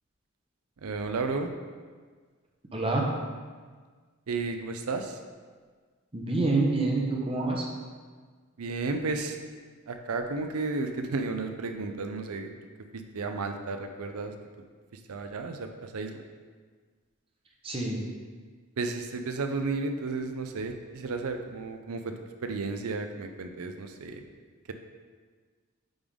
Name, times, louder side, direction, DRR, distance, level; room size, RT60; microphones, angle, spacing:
voice 1, 0.8-1.5 4.3-5.2 8.6-9.4 9.9-12.5 12.9-14.3 14.9-16.2 18.8-22.1 22.4-24.2, right 3 dB, 85° right, 6 dB, 0.6 m, -33 dB
voice 2, 2.7-3.1 6.1-7.6 17.6-18.0, right 2 dB, 25° right, -1 dB, 0.8 m, -27 dB
8.8 x 3.5 x 3.6 m, 1.5 s
head